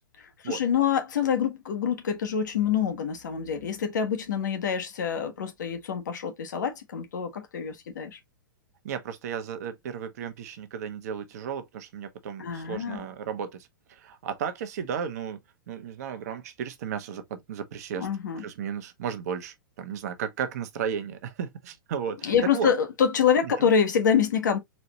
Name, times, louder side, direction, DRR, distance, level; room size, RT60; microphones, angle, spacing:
voice 1, 0.2-8.2 12.4-13.0 18.0-18.4 22.2-24.6, left 7 dB, 60° left, 1.2 m, -26 dB
voice 2, 8.8-15.4 15.7-18.1 18.3-22.7 23.4-23.7, right 7 dB, 50° right, 0.9 m, -34 dB
4.2 x 2.8 x 2.9 m
figure-of-eight pair, 105°, 11 cm